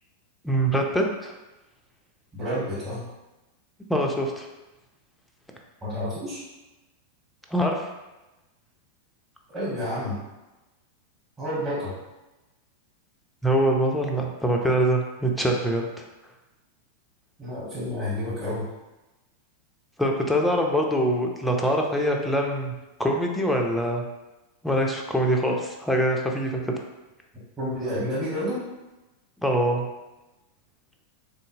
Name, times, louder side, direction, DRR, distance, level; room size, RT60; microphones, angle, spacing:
voice 1, 0.4-1.3 3.9-4.5 7.5-7.9 13.4-16.1 20.0-22.7 23.0-24.0 24.6-26.6 29.4-29.8, equal, 5° left, 1 dB, 0.5 m, -24 dB
voice 2, 2.3-3.1 5.8-6.4 9.5-10.2 11.4-12.0 17.4-18.7 27.6-28.7, equal, 20° right, -12 dB, 1.2 m, -30 dB
3.6 x 2.7 x 2.6 m, 1.0 s
figure-of-eight pair, 90°, 0 cm